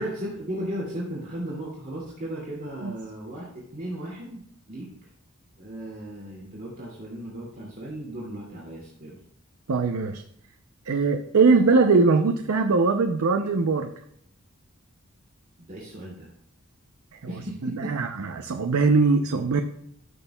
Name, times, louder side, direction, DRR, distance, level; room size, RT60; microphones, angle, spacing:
voice 1, 0.0-5.1 5.6-9.2 15.6-16.3 17.3-17.9, right 1 dB, 45° right, -6 dB, 2.5 m, -36 dB
voice 2, 9.7-10.2 10.9-13.9 17.6-19.6, right 4 dB, 90° right, 5 dB, 0.6 m, -21 dB
14.0 x 6.2 x 2.3 m, 0.68 s
head